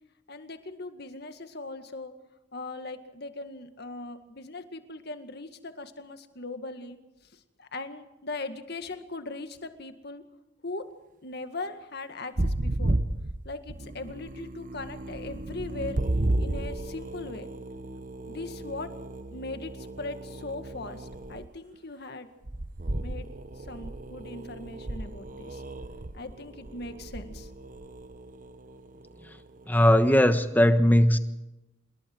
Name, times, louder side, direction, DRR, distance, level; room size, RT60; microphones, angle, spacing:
voice 1, 0.3-2.1 2.5-10.2 10.6-10.9 11.2-13.0 13.4-16.0 16.4-17.5 18.2-18.9 19.3-22.3 23.0-23.3 23.6-25.6 26.1-27.5, left 2 dB, 55° left, 8 dB, 2.0 m, -39 dB
sound 1, 12.4-21.5 22.4-30.1, right 1 dB, 45° right, 1.0 m, -34 dB
voice 2, 29.7-31.2, equal, 10° left, 9 dB, 1.2 m, -19 dB
27.0 x 21.5 x 4.7 m, 1.0 s
head